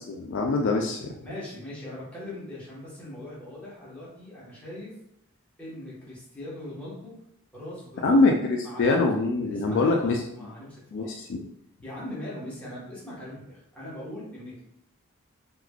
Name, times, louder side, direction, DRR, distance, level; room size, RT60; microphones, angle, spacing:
voice 1, 0.1-1.1 8.0-10.5 10.9-11.4, left 3 dB, 55° left, 2 dB, 0.3 m, -24 dB
voice 2, 1.2-4.9 5.6-7.1 7.5-8.2 8.6-8.9 9.4-11.1 11.8-14.6, left 1 dB, 5° left, -8 dB, 1.2 m, -40 dB
3.6 x 3.1 x 2.3 m, 0.77 s
head